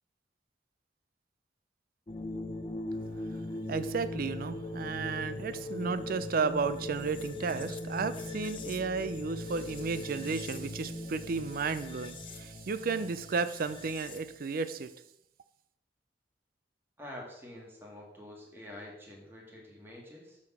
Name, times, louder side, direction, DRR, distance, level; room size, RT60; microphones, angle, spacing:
sound 1, 2.1-14.4, left 2 dB, 30° left, 0.6 m, -40 dB
voice 1, 3.7-14.9, right 4 dB, 55° right, 13 dB, 0.4 m, -33 dB
voice 2, 17.0-20.4, left 1 dB, 15° right, -2 dB, 1.6 m, -47 dB
6.7 x 4.2 x 5.6 m, 0.81 s
head